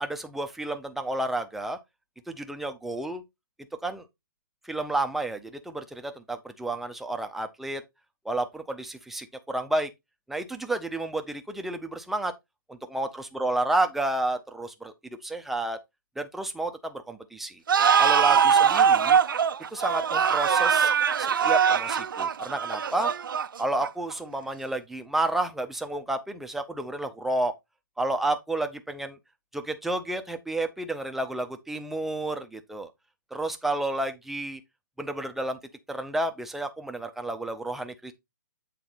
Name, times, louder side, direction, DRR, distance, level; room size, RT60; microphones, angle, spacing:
voice 1, 0.0-1.8 2.3-3.2 3.8-4.1 4.6-7.8 8.3-9.9 10.3-12.3 12.7-14.9 15.2-15.8 16.2-17.6 18.0-19.2 19.7-20.9 21.2-23.1 23.6-27.5 28.0-29.2 29.5-32.9 33.3-34.6 35.0-35.6 35.9-38.1, right 2 dB, ahead, 0.6 m, -31 dB
sound 1, 17.7-24.1, right 7 dB, 75° right, 0.6 m, -22 dB
7.8 x 4.1 x 4.0 m
hypercardioid pair, 145°, 11 cm